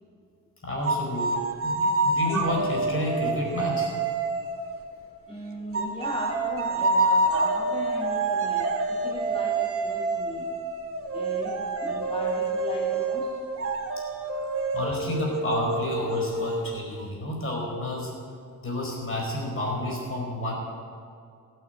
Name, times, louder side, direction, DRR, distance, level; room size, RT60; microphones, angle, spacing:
voice 1, 0.6-3.9 14.5-18.1 18.6-20.6, left 1 dB, 40° left, -1 dB, 5.1 m, -30 dB
sound 1, 0.8-4.8 5.7-17.0, right 3 dB, 45° right, 1.8 m, -27 dB
voice 2, 5.3-10.5 11.1-13.3, left 1 dB, 15° left, -2 dB, 1.7 m, -37 dB
15.5 x 9.5 x 8.2 m, 2.3 s
cardioid pair, 115°, 32 cm